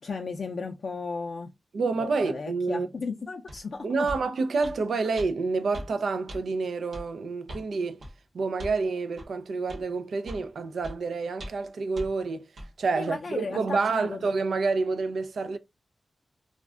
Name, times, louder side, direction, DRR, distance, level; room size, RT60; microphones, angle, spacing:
voice 1, 0.0-1.5 2.0-4.1 13.0-14.2, left 4 dB, 55° left, 0.4 m, -35 dB
voice 2, 1.7-2.9 3.8-8.0 8.3-12.5 12.8-15.6, right 4 dB, 90° right, 0.4 m, -28 dB
sound 1, 3.5-3.6 4.1-4.2 4.6-4.8 5.2-5.3 5.7-5.9 6.3-6.4 6.9-7.1 7.5-7.7 8.0-8.1 8.6-8.8 9.2-9.3 9.7-9.8 10.3-10.5 10.8-11.0 11.4-11.7 12.0-12.1 12.6-12.7, equal, 60° right, 0.9 m, -39 dB
2.4 x 2.1 x 3.5 m
wide cardioid pair, 175°, 0 cm